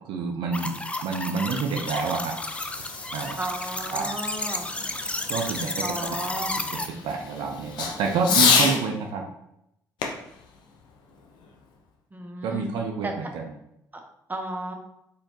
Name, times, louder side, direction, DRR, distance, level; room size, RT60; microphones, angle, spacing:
voice 1, 0.1-0.7 1.0-2.3 3.1-3.4 3.9-4.1 5.3-5.8 6.7-6.8 7.0-9.2 12.4-13.4, right 4 dB, 65° right, 2 dB, 0.5 m, -28 dB
sound 1, 0.5-6.9, left 2 dB, 15° left, 0.4 m, -32 dB
Fireworks, 1.6-8.8 10.0-11.6, left 5 dB, 60° left, 0.6 m, -29 dB
voice 2, 3.4-4.7 5.8-6.5 8.3-8.8 12.1-12.7 13.0-13.1 14.3-14.7, right 1 dB, 20° right, 2 dB, 0.8 m, -33 dB
4.2 x 3.1 x 2.8 m, 0.79 s
hypercardioid pair, 50°, 9 cm